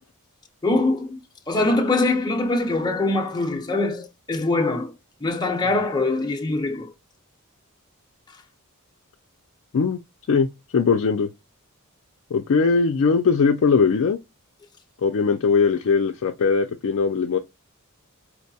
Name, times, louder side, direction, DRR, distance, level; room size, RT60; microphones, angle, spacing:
voice 1, 0.6-1.2 1.5-4.9 5.2-6.9, left 2 dB, 20° left, 0.6 m, -23 dB
voice 2, 10.7-11.3 12.3-14.2 15.0-17.4, left 5 dB, 60° left, 0.4 m, -20 dB
4.5 x 2.2 x 2.7 m
head